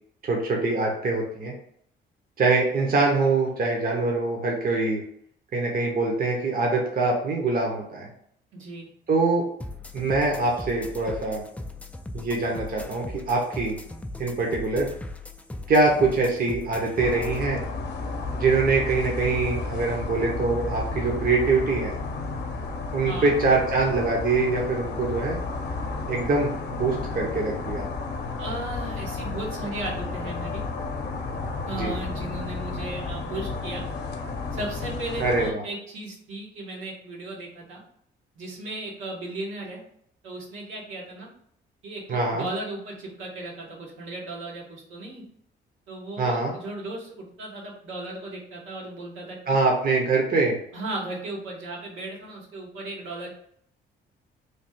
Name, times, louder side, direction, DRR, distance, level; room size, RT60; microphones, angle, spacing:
voice 1, 0.2-1.5 2.4-5.0 5.5-8.1 9.1-9.4 9.9-11.4 12.1-13.8 14.2-14.9 15.7-17.6 18.3-22.0 22.9-25.4 26.1-27.9 31.7-31.9 35.2-35.6 42.1-42.5 46.2-46.5 49.5-50.6, right 3 dB, 45° right, 0 dB, 0.9 m, -24 dB
voice 2, 8.5-8.9 23.0-23.3 28.4-30.6 31.6-33.8 34.5-37.8 38.3-39.8 40.2-41.3 41.8-45.2 45.9-49.6 50.7-53.3, right 2 dB, 80° right, -4 dB, 1.4 m, -36 dB
sound 1, 9.6-17.4, left 2 dB, 5° left, 0.3 m, -38 dB
sound 2, 17.0-35.5, left 3 dB, 60° left, 0.7 m, -32 dB
3.3 x 2.4 x 4.3 m, 0.69 s
cardioid pair, 90°, 20 cm